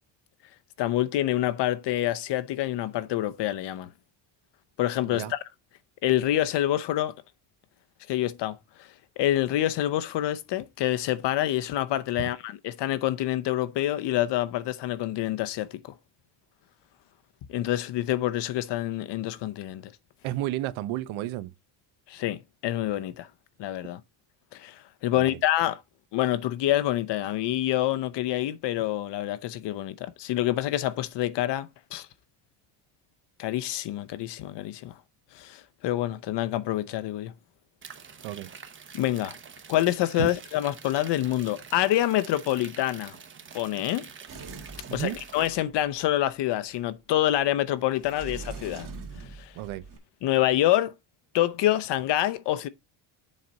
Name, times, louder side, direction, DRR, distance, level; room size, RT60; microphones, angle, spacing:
voice 1, 0.8-3.9 4.8-5.4 6.0-7.1 8.1-8.9 9.2-15.8 17.5-19.9 22.1-23.3 23.6-24.0 24.5-25.8 26.1-32.1 33.4-35.0 35.3-37.3 38.9-39.3 39.7-43.2 43.5-44.1 44.9-48.9 49.4-49.5 50.2-50.9 51.3-52.7, left 13 dB, 55° left, 0.8 m, -27 dB
voice 2, 20.2-21.5 25.1-25.4 38.2-38.5 40.2-40.3 44.9-45.2 49.5-49.9, right 15 dB, 70° right, 1.0 m, -32 dB
sound 1, 37.8-45.5, right 6 dB, 25° right, 0.9 m, -46 dB
Sliding door, 44.3-45.8 48.0-50.0, right 4 dB, 40° right, 2.2 m, -42 dB
7.4 x 4.1 x 5.2 m
cardioid pair, 150°, 50 cm